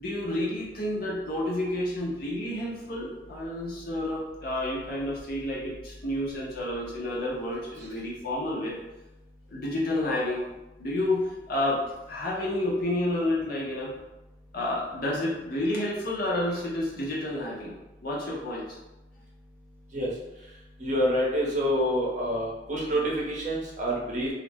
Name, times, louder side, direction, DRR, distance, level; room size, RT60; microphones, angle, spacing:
voice 1, 0.0-8.8 9.5-10.4 10.8-13.9 14.5-17.7 18.0-18.8, left 1 dB, 55° left, -4 dB, 0.7 m, -30 dB
voice 2, 20.8-24.3, equal, 45° right, -4 dB, 0.7 m, -27 dB
2.4 x 2.1 x 3.3 m, 1.0 s
head